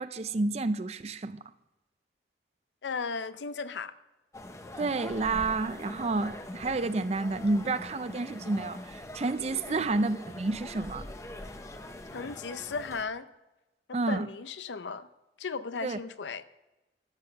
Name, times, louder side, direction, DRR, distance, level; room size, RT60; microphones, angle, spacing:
voice 1, 0.0-1.4 4.8-11.1 13.9-14.3 15.8-16.0, right 3 dB, 35° right, 0.4 m, -30 dB
voice 2, 2.8-3.9 9.7-9.9 12.1-13.3 13.9-15.1 15.4-16.4, left 4 dB, 85° left, 0.6 m, -36 dB
sound 1, 4.3-13.0, left 1 dB, 15° left, 0.7 m, -43 dB
13.0 x 7.3 x 6.7 m
head